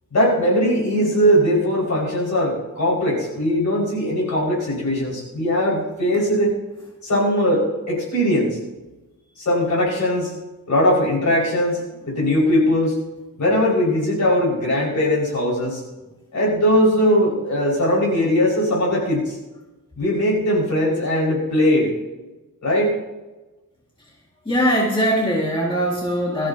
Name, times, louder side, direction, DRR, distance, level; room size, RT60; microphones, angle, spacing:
voice 1, 0.1-6.5 7.0-8.6 9.4-10.3 10.7-11.8 12.1-13.0 13.4-15.8 16.3-19.4 20.0-21.9 22.6-23.0, equal, 50° left, -3 dB, 5.5 m, -20 dB
voice 2, 24.5-26.5, equal, 15° left, -4 dB, 2.1 m, -21 dB
22.0 x 13.5 x 2.9 m, 1.1 s
wide cardioid pair, 135°, 36 cm